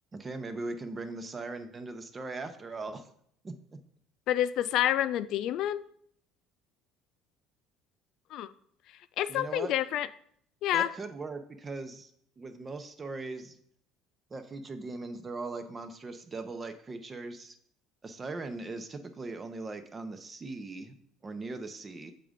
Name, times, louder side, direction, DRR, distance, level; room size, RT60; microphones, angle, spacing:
voice 1, 0.1-3.1 3.4-3.8 9.3-9.7 10.7-12.1 12.4-13.6 14.3-17.6 18.0-20.9 21.2-22.1, right 3 dB, 25° right, 9 dB, 0.8 m, -39 dB
voice 2, 4.3-5.8 8.3-8.5 9.2-10.1 10.6-10.9, left 12 dB, 65° left, 14 dB, 0.3 m, -28 dB
6.8 x 3.8 x 5.1 m, 0.67 s
supercardioid pair, 95°, 0 cm